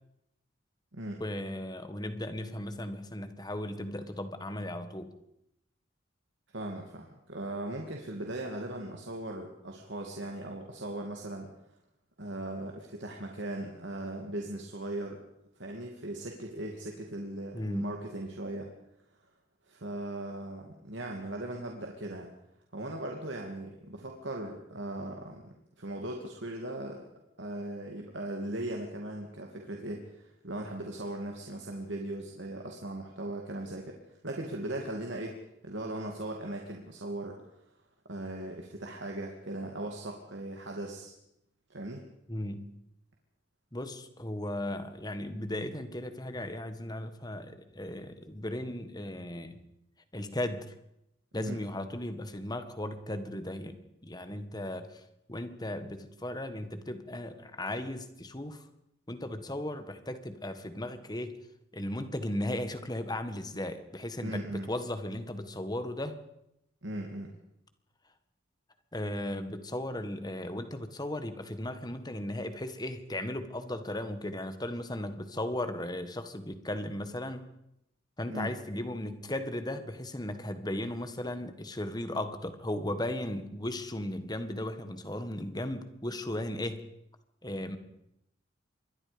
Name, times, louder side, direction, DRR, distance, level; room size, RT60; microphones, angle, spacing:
voice 1, 1.2-5.1 17.5-18.0 42.3-42.7 43.7-49.6 50.1-50.7 51.3-55.0 55.3-58.6 59.1-61.3 61.7-66.2 68.9-77.5 78.2-86.8 87.4-87.8, left 1 dB, 20° left, 9 dB, 1.7 m, -36 dB
voice 2, 6.5-11.5 12.2-15.2 15.6-18.7 19.7-22.3 22.7-27.1 27.4-37.4 38.1-41.1 41.7-42.0 51.3-51.6 64.2-64.7 66.8-67.3 78.3-78.5, right 1 dB, 70° right, 1 dB, 2.6 m, -38 dB
26.0 x 22.0 x 5.3 m, 0.81 s
head